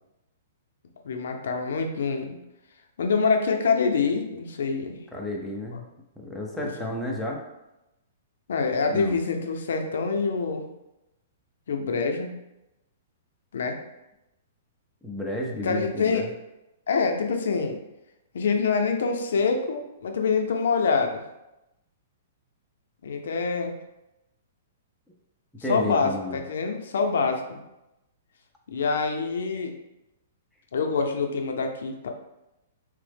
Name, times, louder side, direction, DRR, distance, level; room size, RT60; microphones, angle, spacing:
voice 1, 1.0-2.4 3.0-5.0 6.6-6.7 8.5-10.6 11.7-12.3 13.5-13.8 15.6-16.3 16.9-17.8 18.3-21.2 23.0-23.7 25.7-27.6 28.7-29.7 30.7-32.1, left 4 dB, 75° left, 4 dB, 0.4 m, -25 dB
voice 2, 5.1-5.8 6.2-7.4 8.9-9.1 15.0-16.3 25.6-26.4, left 1 dB, ahead, -2 dB, 0.3 m, -32 dB
3.1 x 2.0 x 3.3 m, 0.92 s
hypercardioid pair, 170°, 0 cm